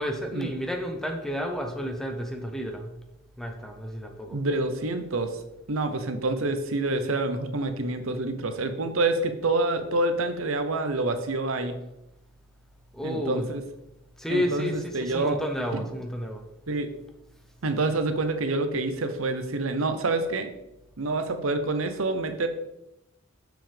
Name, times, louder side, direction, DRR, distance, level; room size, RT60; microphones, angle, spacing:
voice 1, 0.0-2.9 3.4-4.4 12.9-13.5 14.2-16.4, equal, ahead, 3 dB, 0.7 m, -31 dB
voice 2, 4.3-5.4 5.7-11.8 13.0-13.6 14.3-15.4 16.7-16.9 17.6-20.5 21.0-22.5, right 2 dB, 75° right, 8 dB, 0.8 m, -27 dB
7.0 x 6.1 x 3.4 m, 0.87 s
head